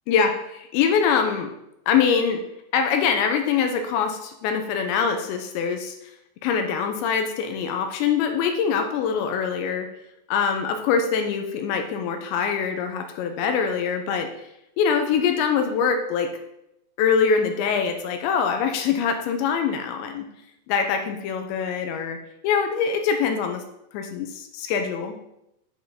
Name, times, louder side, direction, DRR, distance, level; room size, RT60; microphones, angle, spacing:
voice 1, 0.1-1.5 1.9-2.4 2.7-6.0 6.4-9.9 10.3-14.3 14.8-16.3 17.0-20.3 20.7-22.2 22.4-23.6 23.9-25.2, left 6 dB, 85° left, 6 dB, 2.8 m, -23 dB
9.5 x 6.3 x 3.6 m, 0.83 s
omnidirectional pair, 5.5 m